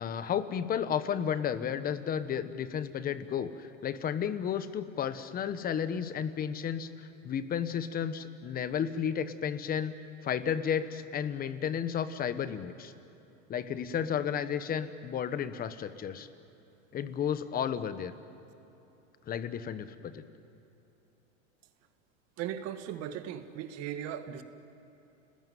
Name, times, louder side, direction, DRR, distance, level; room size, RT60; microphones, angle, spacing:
voice 1, 0.0-9.9 10.2-12.9 13.5-16.3 16.9-18.1 19.3-20.2, left 8 dB, 20° left, 12 dB, 1.2 m, -33 dB
voice 2, 22.4-24.4, right 10 dB, 40° right, 9 dB, 1.8 m, -37 dB
30.0 x 20.5 x 9.5 m, 3.0 s
supercardioid pair, 135°, 40 cm